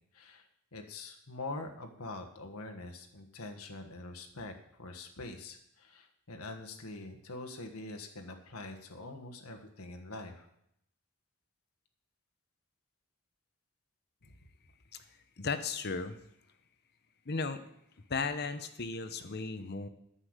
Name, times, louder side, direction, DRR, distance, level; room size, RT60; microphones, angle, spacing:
voice 1, 0.7-4.5 4.8-10.4 14.2-14.3, left 2 dB, 70° left, 4 dB, 1.5 m, -44 dB
voice 2, 15.4-16.2 17.3-17.6 18.1-19.9, left 4 dB, 45° left, 10 dB, 0.9 m, -35 dB
10.0 x 7.0 x 8.0 m, 0.74 s
head